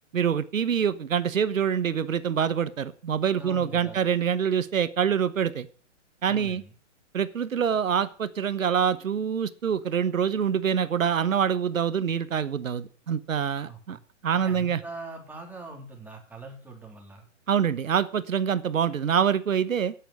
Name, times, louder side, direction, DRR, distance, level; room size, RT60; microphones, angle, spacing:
voice 1, 0.1-5.7 6.2-6.6 7.1-14.0 14.2-14.8 17.5-19.9, right 8 dB, 85° right, 14 dB, 1.1 m, -25 dB
voice 2, 3.4-4.0 6.3-6.7 13.7-14.0 14.3-17.3, right 3 dB, 5° right, 0 dB, 3.2 m, -42 dB
9.1 x 8.6 x 9.2 m, 0.41 s
hypercardioid pair, 140°, 38 cm